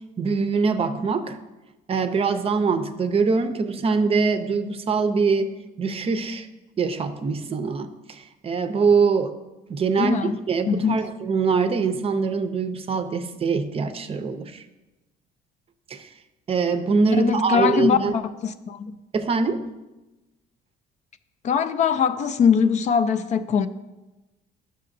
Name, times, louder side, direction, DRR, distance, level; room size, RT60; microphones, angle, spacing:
voice 1, 0.2-1.4 1.9-5.5 5.8-6.5 6.8-9.3 9.7-10.2 10.5-14.6 15.9-16.1 16.5-18.1 19.1-19.7, right 4 dB, 35° right, 0.5 m, -23 dB
voice 2, 10.0-10.3 10.7-11.0 17.2-18.9 21.4-23.7, left 6 dB, 45° left, 0.4 m, -22 dB
11.0 x 6.6 x 2.6 m
cardioid pair, 110°, 17 cm